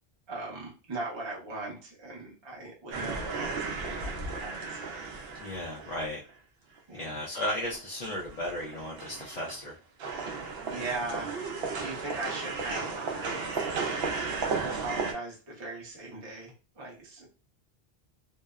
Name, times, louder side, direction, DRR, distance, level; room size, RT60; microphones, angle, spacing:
voice 1, 0.3-5.0 6.9-7.2 10.1-11.4 11.8-13.4 14.8-17.3, right 2 dB, 30° right, -3 dB, 0.7 m, -39 dB
sound 1, 2.9-6.3 6.8-6.9 7.2-9.7 10.0-15.1, right 4 dB, 70° right, 0.8 m, -35 dB
voice 2, 5.4-6.2 6.9-9.8, left 1 dB, 50° left, -3 dB, 0.5 m, -35 dB
2.7 x 2.0 x 2.3 m, 0.35 s
omnidirectional pair, 1.1 m